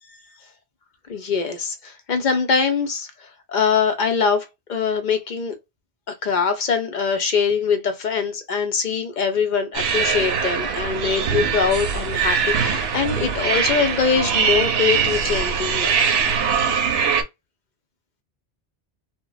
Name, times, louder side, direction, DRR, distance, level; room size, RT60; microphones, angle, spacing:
voice 1, 1.1-3.1 3.5-5.5 6.1-15.9, left 6 dB, 55° left, 0.6 m, -23 dB
sound 1, 9.7-17.2, right 6 dB, 70° right, 0.8 m, -22 dB
2.1 x 2.0 x 3.8 m
omnidirectional pair, 1.1 m